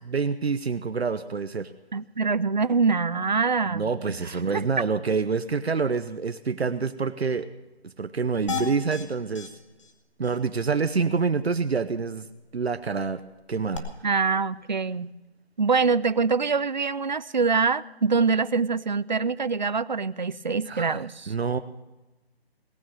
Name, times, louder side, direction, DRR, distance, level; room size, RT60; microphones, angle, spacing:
voice 1, 0.1-1.7 3.6-7.5 7.8-9.5 10.2-12.3 12.5-13.2 13.5-13.9 20.7-21.6, right 5 dB, 75° right, 11 dB, 0.9 m, -27 dB
voice 2, 1.9-3.8 4.5-4.6 14.0-15.1 15.6-21.3, right 4 dB, 45° right, 17 dB, 0.4 m, -24 dB
sound 1, 8.5-9.0 9.4-9.5 9.8-9.9 10.2-10.4 13.7-13.8, left 7 dB, 30° left, 1.4 m, -32 dB
18.5 x 9.5 x 6.4 m, 1.1 s
figure-of-eight pair, 170°, 32 cm